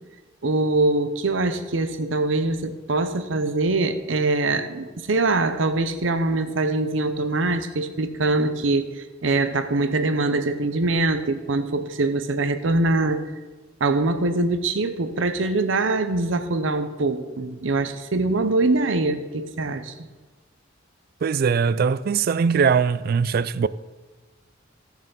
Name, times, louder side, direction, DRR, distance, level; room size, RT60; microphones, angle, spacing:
voice 1, 0.4-13.3 13.8-19.9, right 2 dB, 75° right, 0.8 m, -23 dB
voice 2, 21.2-23.7, right 6 dB, 50° right, 0.3 m, -21 dB
15.5 x 7.1 x 4.0 m
head